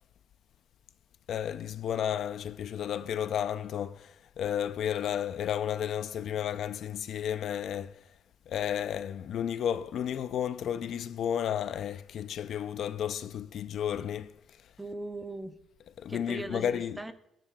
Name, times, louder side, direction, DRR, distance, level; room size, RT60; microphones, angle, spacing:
voice 1, 1.3-8.0 8.5-14.3 16.0-17.0, left 9 dB, 50° left, 0.4 m, -32 dB
voice 2, 14.8-15.6 16.1-17.1, right 2 dB, 5° right, 0.5 m, -39 dB
10.0 x 9.3 x 3.6 m
cardioid pair, 175°, 0 cm